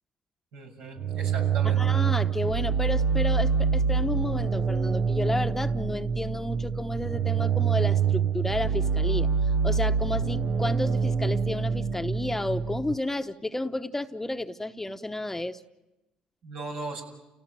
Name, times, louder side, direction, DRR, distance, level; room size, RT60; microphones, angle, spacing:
voice 1, 0.5-1.8 16.4-17.0, right 3 dB, 80° right, 1 dB, 6.9 m, -38 dB
sound 1, 1.0-12.9, right 6 dB, 65° right, 0.9 m, -26 dB
voice 2, 1.6-9.3 9.6-15.6, left 1 dB, 10° left, 8 dB, 1.0 m, -31 dB
30.0 x 17.5 x 9.1 m, 1.0 s
supercardioid pair, 75°, 3 cm